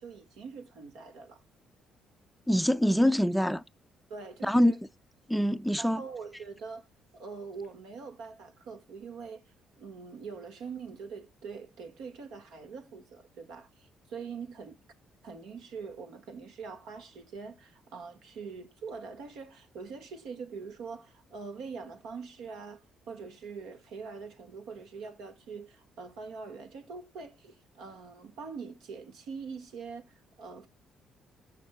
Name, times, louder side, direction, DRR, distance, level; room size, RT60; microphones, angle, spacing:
voice 1, 0.0-1.4 4.1-4.8 5.8-6.9 7.1-9.4 9.8-14.8 15.2-30.7, right 5 dB, 85° right, 1.7 m, -43 dB
voice 2, 2.5-3.6 4.4-4.7 5.3-6.0, equal, 5° left, 0.4 m, -24 dB
14.5 x 5.7 x 2.3 m
cardioid pair, 80°, 0 cm